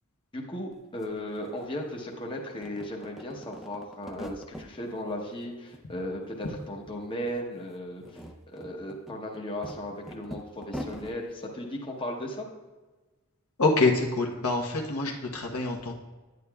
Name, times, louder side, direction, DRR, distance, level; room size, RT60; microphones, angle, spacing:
voice 1, 0.3-8.2 8.5-12.5, left 1 dB, 25° left, 0 dB, 0.9 m, -36 dB
sound 1, 0.7-0.8 1.0-2.2 2.5-4.7 5.1-5.8 6.1-7.0 7.2-7.4 7.9-11.2, equal, ahead, 0.5 m, -43 dB
voice 2, 13.6-15.9, left 3 dB, 75° left, 0 dB, 1.1 m, -26 dB
9.8 x 9.3 x 2.3 m, 1.2 s
head